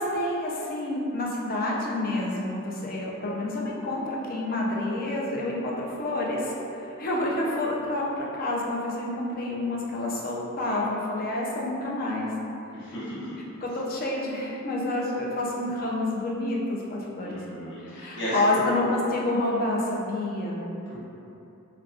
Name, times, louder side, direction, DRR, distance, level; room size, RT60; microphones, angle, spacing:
voice 1, 0.0-12.3 12.8-12.9 13.6-17.4 17.8-20.6, left 1 dB, 45° left, -3 dB, 0.4 m, -28 dB
voice 2, 12.7-13.4 17.2-18.7 20.9-21.0, equal, 60° left, -12 dB, 1.0 m, -34 dB
3.4 x 2.2 x 2.3 m, 2.8 s
head